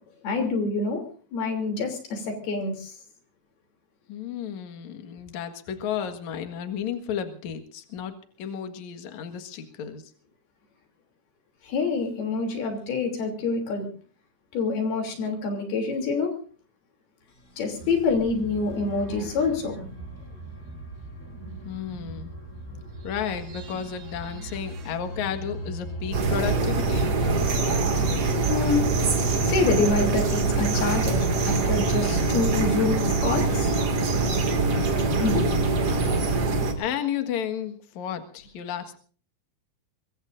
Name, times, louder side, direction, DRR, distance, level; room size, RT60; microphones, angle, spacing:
voice 1, 0.2-1.0 1.3-2.9 11.6-13.9 14.5-16.3 17.6-19.8 28.5-28.9 29.4-33.7 35.2-35.4, left 4 dB, 75° left, 3 dB, 5.1 m, -26 dB
voice 2, 4.1-8.1 8.4-10.0 21.6-22.3 23.0-27.1 35.1-35.7 36.7-39.0, left 8 dB, 55° left, 7 dB, 2.7 m, -33 dB
sound 1, 17.3-28.2, left 1 dB, 30° left, 1.6 m, -42 dB
sound 2, 17.8-30.1, right 3 dB, 85° right, 4.8 m, -41 dB
sound 3, 26.1-36.7, right 3 dB, 45° right, 3.0 m, -24 dB
23.5 x 23.5 x 2.6 m, 0.43 s
omnidirectional pair, 4.5 m